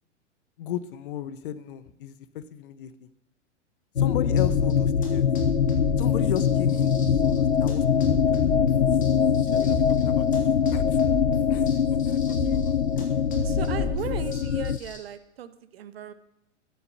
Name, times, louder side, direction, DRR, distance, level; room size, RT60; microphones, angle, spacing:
voice 1, 0.6-3.1 4.0-5.2 6.0-7.8 9.5-11.0 11.5-11.7 12.0-13.1 13.4-14.2, left 11 dB, 45° left, 15 dB, 1.0 m, -36 dB
sound 1, 4.0-14.8, left 7 dB, 80° left, 0.8 m, -23 dB
sound 2, 4.4-15.0, left 2 dB, 20° left, 3.3 m, -34 dB
voice 2, 13.4-16.1, right 9 dB, 55° right, 13 dB, 1.3 m, -37 dB
14.0 x 11.0 x 6.7 m, 0.83 s
figure-of-eight pair, 105°, 36 cm